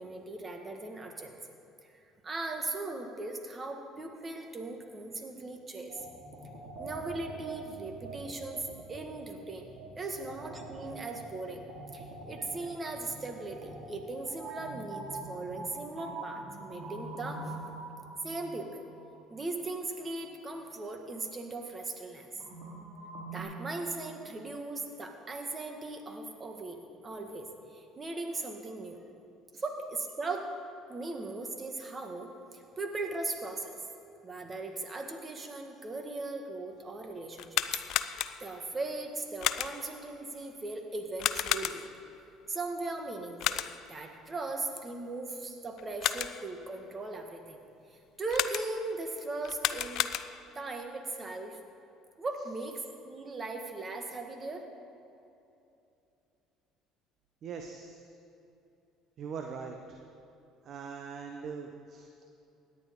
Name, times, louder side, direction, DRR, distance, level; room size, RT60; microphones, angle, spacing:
voice 1, 0.0-1.4 2.2-6.0 6.8-8.6 8.9-9.7 10.0-11.6 11.9-17.5 18.2-18.8 19.3-22.3 23.3-29.0 29.6-30.5 30.9-33.8 34.2-37.6 38.4-41.9 42.5-43.6 43.9-47.6 48.2-50.1 50.5-51.6 52.2-54.7, right 2 dB, 30° right, 4 dB, 1.8 m, -38 dB
sound 1, 5.9-19.6 22.4-23.4, right 2 dB, 70° right, 2.4 m, -44 dB
sound 2, 37.3-38.6 39.4-40.0 41.2-42.1 43.4-44.0 45.8-46.5 48.3-48.9 49.4-50.6, left 12 dB, 65° left, 0.4 m, -33 dB
voice 2, 57.4-58.0 59.2-60.0 60.6-62.2, right 5 dB, 55° right, 4 dB, 0.9 m, -42 dB
17.0 x 10.0 x 3.8 m, 2.7 s
supercardioid pair, 75°, 0 cm